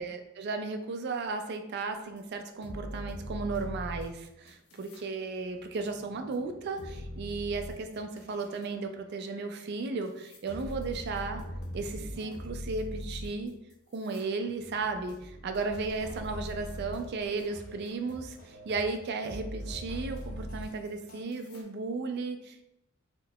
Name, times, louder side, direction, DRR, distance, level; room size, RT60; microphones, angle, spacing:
voice 1, 0.0-11.4 11.7-13.6 13.9-22.7, right 4 dB, 50° right, 6 dB, 0.3 m, -35 dB
sound 1, 2.2-2.3 2.6-5.0 5.4-8.7 9.5-9.6 10.0-17.5 17.8-18.4 18.8-18.9 19.2-21.6, left 1 dB, 85° left, 0.6 m, -42 dB
sound 2, 15.7-21.2, equal, 40° left, 0.7 m, -50 dB
3.6 x 2.8 x 2.3 m, 0.84 s
head